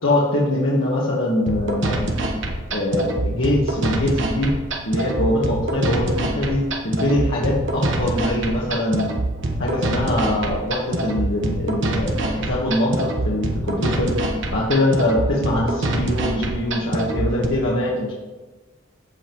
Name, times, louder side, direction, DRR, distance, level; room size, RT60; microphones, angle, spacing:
voice 1, 0.0-2.1 2.7-4.5 4.8-9.2 9.6-14.1 14.5-18.1, left 1 dB, 85° left, -5 dB, 1.5 m, -22 dB
sound 1, 1.5-17.5, right 1 dB, 70° right, 1.1 m, -25 dB
14.5 x 5.3 x 3.0 m, 1.2 s
head